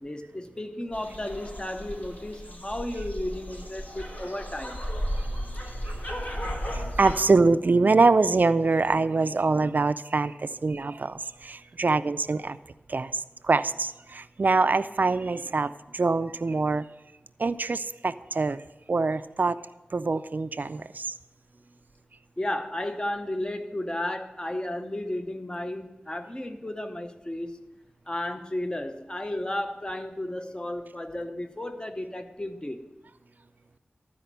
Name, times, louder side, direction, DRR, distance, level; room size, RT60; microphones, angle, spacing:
voice 1, 0.0-4.8 22.4-27.6 28.1-32.8, left 1 dB, 25° left, 7 dB, 0.9 m, -33 dB
sound 1, 0.9-7.2, equal, 50° left, 1.5 m, -34 dB
voice 2, 6.7-12.6 12.9-13.1 13.4-16.8 17.4-18.6 18.9-19.6 19.9-21.1, right 3 dB, 55° right, 12 dB, 0.4 m, -24 dB
13.0 x 5.1 x 6.7 m, 1.0 s
wide cardioid pair, 50°, 4 cm